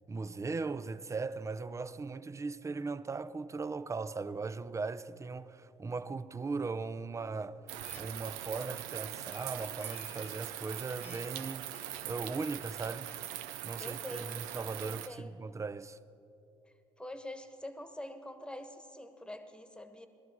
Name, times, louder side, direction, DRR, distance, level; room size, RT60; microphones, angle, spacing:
voice 1, 0.1-7.6 7.9-11.7 12.0-13.1 13.6-16.0, right 4 dB, 25° right, 0.5 m, -38 dB
Harmonica, 7.7-14.2, left 6 dB, 55° left, 1.4 m, -58 dB
sound 1, 7.7-15.1, right 13 dB, 85° right, 0.5 m, -42 dB
voice 2, 13.8-14.4 14.8-15.3 17.0-20.1, left 1 dB, 5° left, 1.3 m, -45 dB
18.0 x 12.5 x 4.8 m
supercardioid pair, 65°, 13 cm